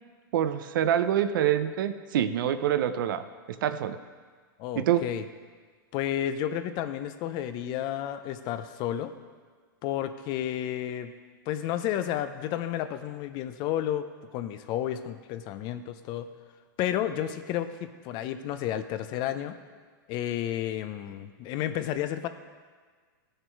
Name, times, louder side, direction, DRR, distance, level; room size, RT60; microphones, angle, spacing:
voice 1, 0.3-3.2 3.6-4.0 4.8-5.0, right 10 dB, 70° right, 11 dB, 0.7 m, -26 dB
voice 2, 4.6-5.2 5.9-9.1 9.8-11.1 11.5-14.1 14.3-16.3 16.8-19.6 20.1-22.3, left 11 dB, 40° left, 10 dB, 0.7 m, -31 dB
14.0 x 6.6 x 4.6 m, 1.5 s
hypercardioid pair, 135°, 11 cm